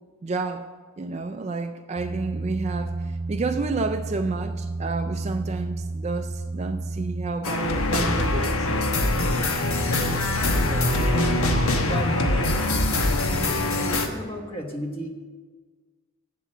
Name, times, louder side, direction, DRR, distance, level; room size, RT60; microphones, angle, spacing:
voice 1, 0.2-0.7 1.0-8.7, right 3 dB, 30° right, 7 dB, 0.3 m, -30 dB
sound 1, 2.0-7.3, right 2 dB, 55° right, 0.8 m, -31 dB
sound 2, 7.4-14.1, left 2 dB, 75° left, 1.1 m, -23 dB
voice 2, 10.6-15.1, equal, 25° left, 3 dB, 1.2 m, -35 dB
8.1 x 7.6 x 7.8 m, 1.4 s
head